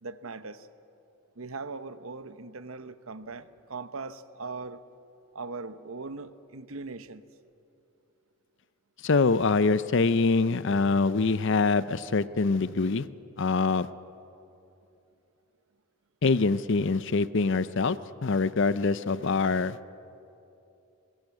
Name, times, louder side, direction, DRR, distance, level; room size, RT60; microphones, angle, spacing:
voice 1, 0.0-0.7 1.4-4.8 5.3-7.2, right 3 dB, 65° right, 12 dB, 0.9 m, -40 dB
voice 2, 9.0-13.1 13.4-13.9 16.2-19.8, left 4 dB, 55° left, 16 dB, 0.6 m, -24 dB
22.0 x 20.5 x 8.5 m, 2.8 s
head